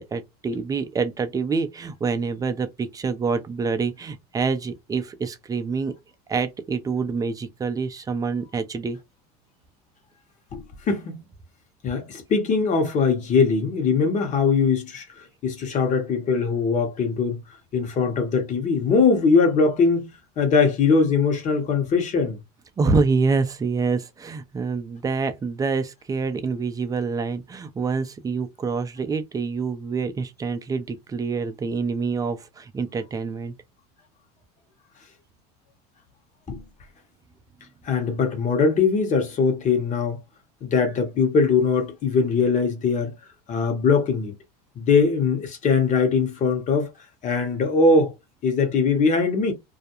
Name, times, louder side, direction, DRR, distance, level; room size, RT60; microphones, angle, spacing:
voice 1, 0.0-6.0 6.3-9.0 22.8-33.5, right 4 dB, 15° right, 0.5 m, -26 dB
voice 2, 10.5-11.2 11.8-15.0 15.4-17.4 17.7-20.1 20.4-22.4 36.5-36.6 37.8-40.2 40.6-43.1 43.5-44.3 44.8-46.9 47.2-48.1 48.4-49.5, left 4 dB, 40° left, 1.0 m, -21 dB
2.4 x 2.1 x 2.8 m
supercardioid pair, 110°, 20 cm